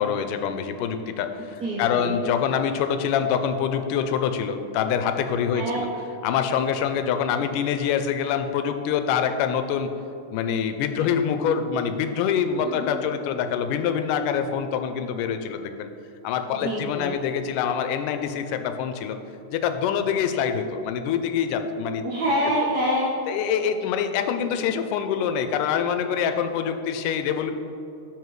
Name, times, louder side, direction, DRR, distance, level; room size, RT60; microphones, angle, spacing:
voice 1, 0.0-5.9 6.2-9.9 10.3-15.9 16.2-19.2 19.5-22.0 23.3-27.5, left 7 dB, 85° left, 8 dB, 2.1 m, -25 dB
voice 2, 1.6-2.1 5.5-5.9 12.6-13.0 16.6-17.1 22.0-23.1, equal, 85° right, -6 dB, 0.8 m, -26 dB
12.5 x 5.0 x 3.1 m, 2.7 s
omnidirectional pair, 3.6 m